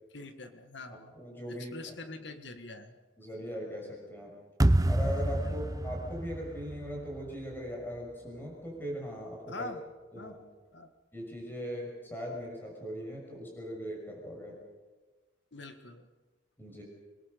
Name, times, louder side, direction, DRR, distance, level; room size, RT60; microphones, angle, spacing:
voice 1, 0.1-1.1 1.5-3.0 5.4-5.5 9.5-9.8 10.2-10.4 10.7-10.9 15.5-16.1, left 2 dB, 60° left, 7 dB, 1.7 m, -44 dB
voice 2, 1.1-1.9 3.2-4.4 4.9-9.7 10.1-10.4 11.1-14.6 16.6-16.8, equal, 10° left, -1 dB, 6.4 m, -39 dB
sound 1, 4.6-7.7, right 1 dB, 15° right, 0.7 m, -28 dB
25.5 x 22.0 x 6.8 m, 1.2 s
head